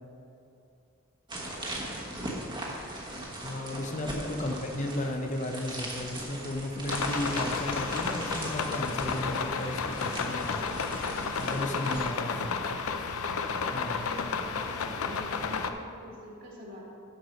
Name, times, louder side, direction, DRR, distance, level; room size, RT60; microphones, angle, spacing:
sound 1, 1.3-12.1, right 1 dB, 20° right, 1.2 m, -39 dB
voice 1, 1.6-2.4 13.9-16.8, left 1 dB, 45° right, -3 dB, 1.8 m, -47 dB
voice 2, 3.4-10.7 11.4-12.5 13.7-14.0, left 1 dB, 35° left, 4 dB, 0.6 m, -34 dB
sound 2, 6.9-15.7, left 5 dB, 85° left, 0.6 m, -32 dB
12.5 x 4.8 x 5.3 m, 2.6 s
head